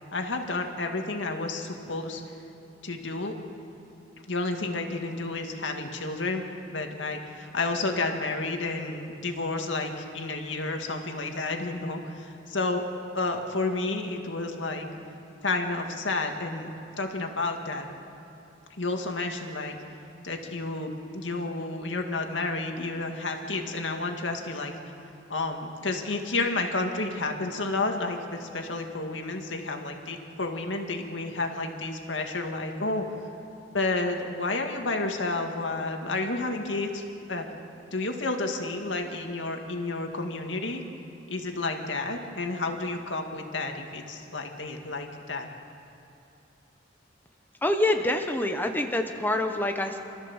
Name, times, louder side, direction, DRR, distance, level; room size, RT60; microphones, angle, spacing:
voice 1, 0.1-2.2 2.8-3.4 4.3-12.8 13.1-14.9 15.4-16.7 17.0-17.9 18.8-19.8 20.2-24.7 25.3-33.1 33.7-37.0 37.3-37.5 37.9-40.8 41.3-45.5, left 3 dB, 85° left, 3 dB, 2.1 m, -31 dB
voice 2, 47.6-50.0, left 1 dB, 10° left, 4 dB, 1.1 m, -26 dB
27.5 x 14.0 x 7.3 m, 2.7 s
head